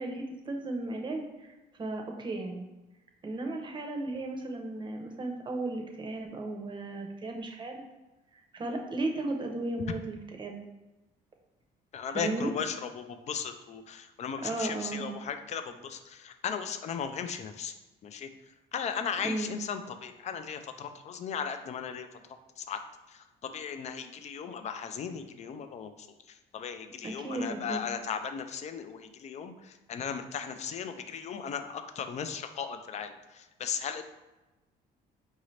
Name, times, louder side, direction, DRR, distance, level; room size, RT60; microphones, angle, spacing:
voice 1, 0.0-1.5 1.8-2.7 3.2-7.8 8.3-10.6 12.1-12.5 14.4-15.1 19.2-19.5 27.0-27.8, right 2 dB, 30° right, 2 dB, 0.7 m, -35 dB
voice 2, 11.9-17.7 18.0-18.3 18.7-22.2 22.6-22.8 23.1-34.0, left 7 dB, 40° left, 8 dB, 0.4 m, -37 dB
4.9 x 2.7 x 3.1 m, 1.1 s
cardioid pair, 110°, 17 cm